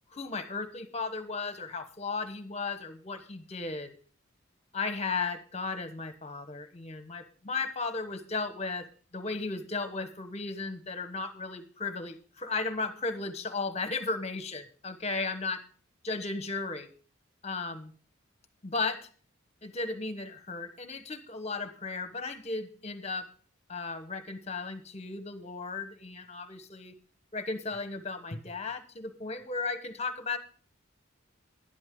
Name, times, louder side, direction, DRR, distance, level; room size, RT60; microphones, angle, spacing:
voice 1, 0.1-3.9 4.7-8.9 9.1-15.6 16.0-16.9 17.4-17.9 18.6-19.1 19.6-23.3 23.7-27.0 27.3-30.4, left 3 dB, 35° left, 10 dB, 1.2 m, -35 dB
12.0 x 11.5 x 3.8 m, 0.41 s
head